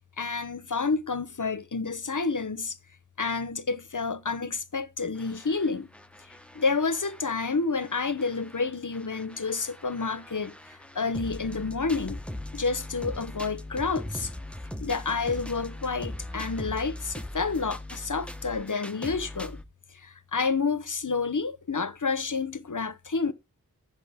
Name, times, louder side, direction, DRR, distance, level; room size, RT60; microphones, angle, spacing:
voice 1, 0.2-2.8 3.2-5.9 6.3-12.2 12.5-14.3 14.8-19.6 19.9-23.3, left 4 dB, 60° left, 0.9 m, -29 dB
sound 1, 5.2-7.4 7.8-19.6, left 1 dB, 5° left, 1.0 m, -40 dB
14.0 x 6.4 x 3.5 m
wide cardioid pair, 40°, 35 cm